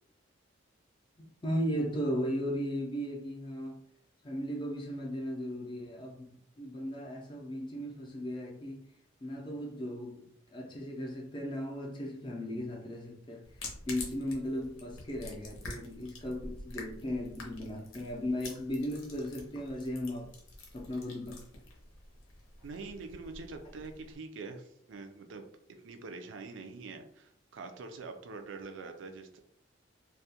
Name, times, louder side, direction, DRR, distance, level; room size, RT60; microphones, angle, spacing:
voice 1, 1.4-3.8 4.2-6.3 6.6-8.9 9.2-13.4 13.9-20.3 20.7-21.4, equal, 25° left, 0.4 m, -36 dB
sound 1, 13.4-24.2, left 2 dB, 85° left, 0.7 m, -48 dB
voice 2, 22.6-29.4, right 3 dB, 75° right, 0.4 m, -45 dB
2.3 x 2.1 x 2.7 m
head